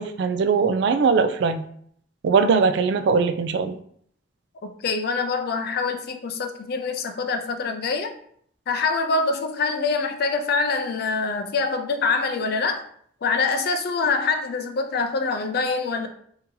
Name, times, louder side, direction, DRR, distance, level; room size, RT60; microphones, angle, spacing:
voice 1, 0.0-1.6 2.2-3.8, right 5 dB, 65° right, 9 dB, 0.3 m, -20 dB
voice 2, 4.6-8.1 8.7-12.8 13.2-16.1, left 4 dB, 55° left, 6 dB, 0.4 m, -25 dB
2.7 x 2.7 x 3.7 m, 0.63 s
head